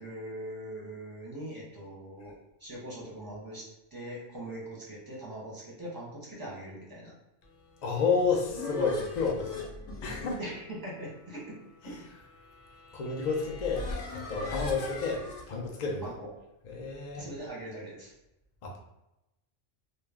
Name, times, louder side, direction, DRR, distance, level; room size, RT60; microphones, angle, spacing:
voice 1, 0.0-2.3 2.6-3.7 3.9-7.1 10.4-11.4 16.0-16.3 17.1-18.1, right 1 dB, 20° right, -5 dB, 0.7 m, -41 dB
voice 2, 7.8-9.7 10.0-10.4 11.8-12.0 12.9-13.9 14.1-16.0 16.6-17.3 18.6-18.8, left 4 dB, 65° left, -1 dB, 0.4 m, -30 dB
sound 1, 7.9-15.5, left 3 dB, 85° left, 1.0 m, -40 dB
2.4 x 2.1 x 3.3 m, 0.89 s
omnidirectional pair, 1.3 m